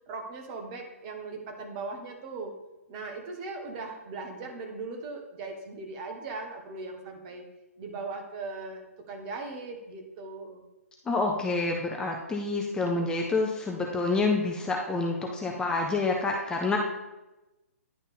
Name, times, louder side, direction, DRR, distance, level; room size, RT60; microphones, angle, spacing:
voice 1, 0.1-2.5 2.9-7.5 7.8-8.8 9.1-10.6, right 3 dB, 30° right, 3 dB, 1.2 m, -39 dB
voice 2, 11.1-16.8, left 3 dB, 10° left, 0 dB, 0.5 m, -28 dB
10.0 x 3.5 x 4.1 m, 0.99 s
figure-of-eight pair, 125°, 8 cm